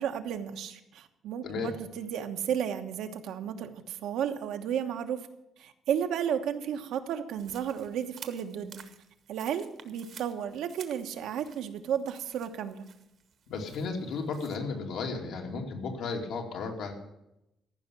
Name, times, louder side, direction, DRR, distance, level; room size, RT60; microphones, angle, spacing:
voice 1, 0.0-5.2 5.6-8.8 9.3-12.9, right 9 dB, 80° right, 7 dB, 1.2 m, -33 dB
voice 2, 1.4-1.7 13.5-16.9, left 4 dB, 75° left, 2 dB, 2.3 m, -34 dB
sound 1, 7.4-14.6, right 7 dB, 50° right, 1.1 m, -52 dB
14.5 x 5.8 x 10.0 m, 0.86 s
cardioid pair, 145°, 0 cm